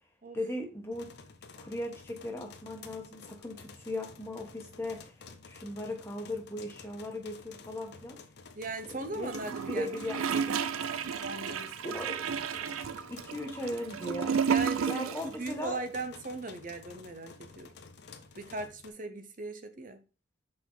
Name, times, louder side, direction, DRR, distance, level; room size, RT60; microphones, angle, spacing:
voice 1, 0.3-1.1 1.6-8.2 8.9-10.6 11.8-12.2 13.1-14.4 14.9-15.8, left 1 dB, 10° left, 1.2 m, -38 dB
sound 1, 0.9-18.9, left 4 dB, 55° left, 0.7 m, -51 dB
voice 2, 8.5-10.0 10.3-10.4 11.2-11.7 14.5-17.7 18.3-20.0, right 2 dB, 40° right, 0.7 m, -38 dB
Gurgling / Toilet flush, 9.3-15.4 15.6-15.7, right 7 dB, 90° right, 0.5 m, -32 dB
6.1 x 4.6 x 3.9 m
head